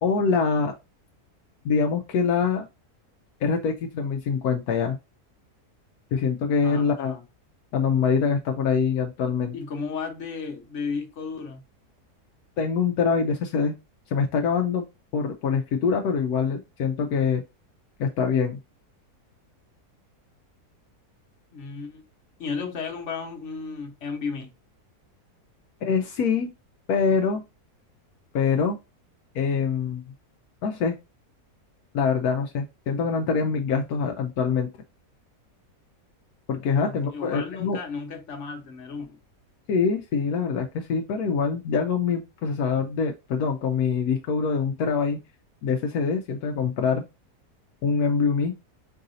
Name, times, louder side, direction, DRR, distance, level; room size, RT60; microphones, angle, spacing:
voice 1, 0.0-0.8 1.6-2.6 3.4-5.0 6.1-7.1 7.7-9.5 12.6-13.7 14.1-14.8 15.1-17.4 18.0-18.6 25.8-26.5 26.9-27.4 28.3-28.8 29.3-30.0 30.6-31.0 31.9-34.7 36.5-37.8 39.7-45.2 45.6-47.0 47.8-48.5, left 5 dB, 75° left, 1.1 m, -24 dB
voice 2, 6.6-7.2 9.5-11.6 21.5-22.0 22.4-24.5 36.8-39.2, left 5 dB, 50° left, 1.3 m, -34 dB
4.6 x 2.7 x 3.9 m
omnidirectional pair, 1.7 m